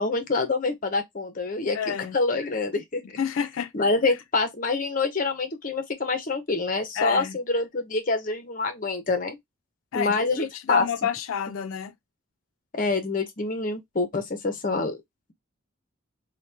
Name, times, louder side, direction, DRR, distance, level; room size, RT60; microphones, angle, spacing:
voice 1, 0.0-3.2 3.7-9.4 9.9-10.9 12.7-15.0, left 3 dB, 40° left, 0.7 m, -26 dB
voice 2, 1.7-2.2 3.2-3.7 4.0-4.2 7.0-7.4 9.9-12.0, left 7 dB, 75° left, 0.4 m, -29 dB
2.9 x 2.2 x 3.2 m
head